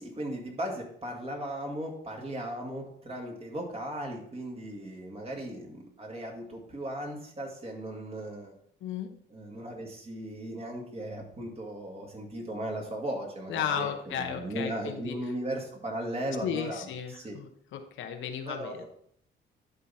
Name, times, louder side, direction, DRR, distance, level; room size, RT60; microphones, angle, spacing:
voice 1, 0.0-8.6 9.3-16.9 17.1-17.3 18.5-18.8, right 1 dB, 30° right, 0 dB, 2.1 m, -37 dB
voice 2, 13.5-15.2 16.4-18.8, left 8 dB, 75° left, 6 dB, 1.0 m, -34 dB
11.0 x 4.0 x 4.2 m, 0.64 s
cardioid pair, 90°, 20 cm